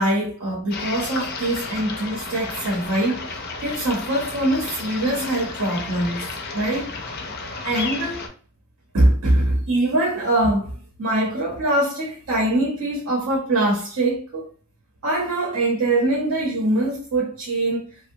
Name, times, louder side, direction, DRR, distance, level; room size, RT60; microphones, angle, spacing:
voice 1, 0.0-6.3 6.5-6.9 7.6-8.2 8.9-14.4 15.0-17.9, right 1 dB, 85° right, -3 dB, 0.8 m, -23 dB
sound 1, 0.7-8.3, left 3 dB, 45° left, 0.4 m, -32 dB
2.7 x 2.0 x 2.6 m, 0.43 s
head